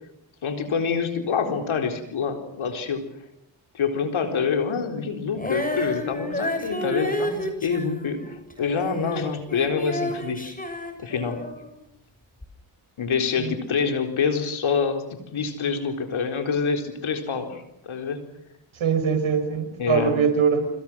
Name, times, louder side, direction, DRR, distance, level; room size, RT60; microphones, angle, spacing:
voice 1, 0.4-3.1 3.7-10.5 11.0-11.4 13.0-18.2 19.8-20.1, left 5 dB, 80° left, 5 dB, 4.3 m, -26 dB
Female singing, 5.3-11.7 12.4-12.5, left 1 dB, 15° left, 7.2 m, -30 dB
voice 2, 18.7-20.7, right 6 dB, 80° right, 8 dB, 5.5 m, -22 dB
28.5 x 26.0 x 6.3 m, 0.78 s
cardioid pair, 50°, 47 cm